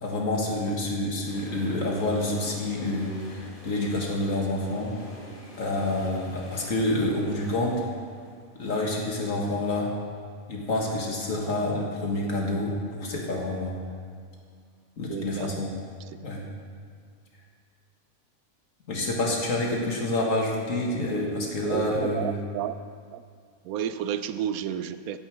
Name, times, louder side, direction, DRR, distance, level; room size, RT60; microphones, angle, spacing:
voice 1, 0.0-5.0 5.6-7.8 8.6-10.0 10.5-13.8 15.0-15.7 16.2-16.5 18.9-22.4, left 1 dB, 65° left, -1 dB, 2.1 m, -28 dB
sound 1, 1.2-11.1 11.3-11.4, left 1 dB, 40° left, 2.0 m, -46 dB
voice 2, 15.1-15.5 21.6-22.7 23.1-23.2 23.6-25.2, right 9 dB, 80° right, 12 dB, 1.0 m, -31 dB
16.0 x 5.6 x 6.0 m, 2.1 s
omnidirectional pair, 1.5 m